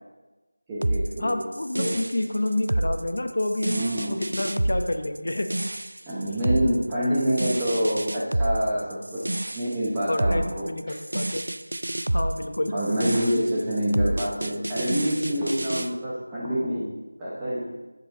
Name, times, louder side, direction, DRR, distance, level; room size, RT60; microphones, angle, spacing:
voice 1, 0.7-1.4 1.7-1.9 3.7-4.2 6.1-10.7 12.7-16.9 17.2-17.7, equal, 10° right, -8 dB, 0.9 m, -26 dB
sound 1, 0.8-15.9, right 1 dB, 65° right, 0.4 m, -29 dB
voice 2, 1.2-3.8 4.1-5.5 10.1-11.5 12.1-12.7, left 1 dB, 55° left, 7 dB, 0.8 m, -28 dB
6.6 x 6.6 x 4.9 m, 1.2 s
figure-of-eight pair, 175°, 0 cm